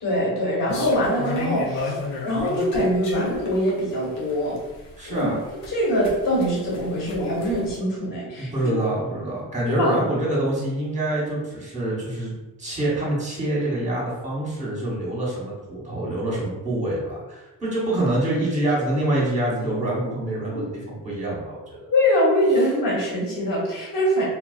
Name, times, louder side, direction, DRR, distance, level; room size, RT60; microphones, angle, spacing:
voice 1, 0.0-1.9 2.2-4.6 5.1-5.3 5.7-8.7 9.7-10.0 20.5-20.6 21.9-24.3, equal, 50° left, -5 dB, 1.4 m, -23 dB
sound 1, 0.7-7.8, left 3 dB, 90° left, 0.7 m, -32 dB
voice 2, 5.0-5.4 8.4-12.3 12.6-21.8, right 1 dB, 15° right, -5 dB, 1.2 m, -26 dB
2.3 x 2.2 x 2.4 m, 1.1 s
supercardioid pair, 55°, 43 cm